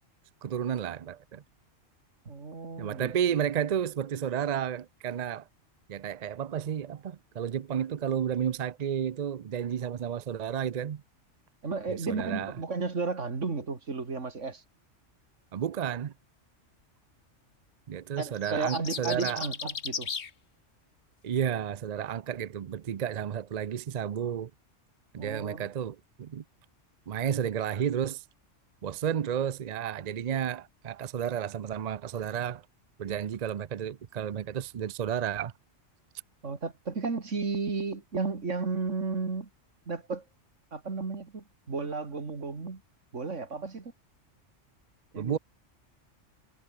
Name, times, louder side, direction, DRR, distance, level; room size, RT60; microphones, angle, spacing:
voice 1, 0.4-1.4 2.8-5.5 5.9-11.0 11.9-12.5 15.5-16.1 17.9-19.5 21.2-24.5 25.1-26.4 27.1-28.2 28.8-32.6 33.0-35.5 45.1-45.4, right 9 dB, 50° right, 0.5 m, -32 dB
voice 2, 2.3-3.1 11.6-14.6 18.2-20.1 25.2-25.7 36.4-39.5 39.9-40.2 40.7-42.8 43.1-43.9 45.1-45.4, right 4 dB, 70° right, 2.8 m, -33 dB
sound 1, 18.2-20.3, left 6 dB, 60° left, 1.6 m, -36 dB
omnidirectional pair, 1.3 m